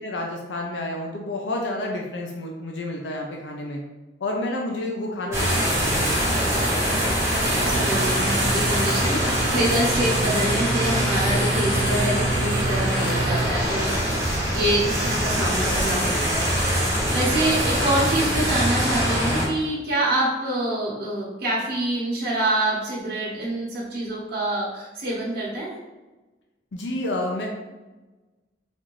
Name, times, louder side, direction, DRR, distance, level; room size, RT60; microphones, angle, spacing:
voice 1, 0.0-3.8 4.2-6.5 26.7-27.5, left 1 dB, 80° left, 0 dB, 0.5 m, -30 dB
sound 1, 5.3-19.5, equal, 15° right, 1.0 m, -23 dB
sound 2, 7.4-13.4, right 2 dB, 85° right, 0.8 m, -29 dB
voice 2, 7.6-25.8, right 1 dB, 55° right, -8 dB, 1.0 m, -26 dB
4.1 x 2.5 x 3.0 m, 1.2 s
head